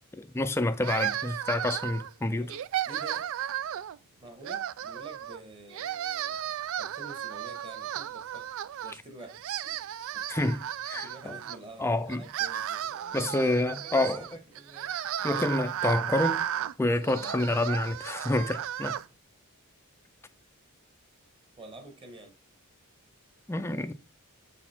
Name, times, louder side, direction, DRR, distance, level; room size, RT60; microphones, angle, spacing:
voice 1, 0.2-2.5 10.3-11.3 11.8-12.2 13.1-14.2 15.2-16.4 16.8-19.0 23.5-23.9, left 2 dB, 10° left, 0.4 m, -28 dB
sound 1, 0.8-2.1 2.5-4.0 4.4-5.4 5.7-9.0 9.3-11.6 12.1-19.0, right 11 dB, 65° right, 0.3 m, -34 dB
voice 2, 2.3-3.4 4.2-6.4 6.8-8.5 8.8-9.8 10.1-10.3 10.9-13.6 13.8-14.9 21.6-22.3, right 2 dB, 25° right, 1.4 m, -48 dB
7.1 x 4.1 x 4.4 m
head